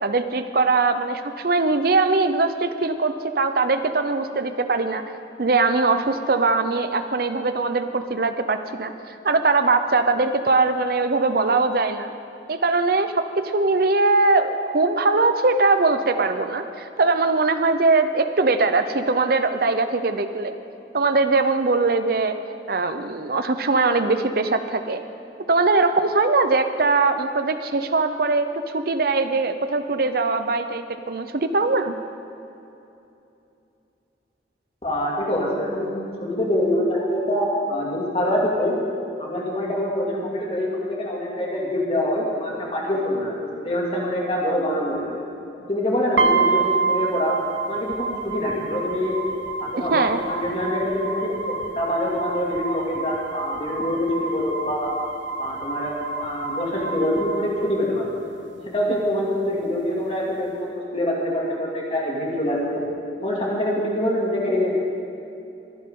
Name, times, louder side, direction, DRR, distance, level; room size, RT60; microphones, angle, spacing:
voice 1, 0.0-5.0 5.4-8.9 9.2-12.1 12.5-20.5 20.9-22.3 22.7-25.0 25.5-32.0 49.8-50.2, right 3 dB, 55° right, 9 dB, 0.7 m, -21 dB
voice 2, 34.8-35.9 36.2-38.7 39.2-45.2 45.7-47.4 47.7-49.2 49.6-54.9 55.4-58.1 58.7-62.8 63.2-64.8, left 1 dB, 30° left, -3 dB, 2.5 m, -25 dB
sound 1, 46.2-58.2, right 4 dB, 85° right, 0.9 m, -28 dB
23.0 x 11.0 x 3.8 m, 2.8 s
head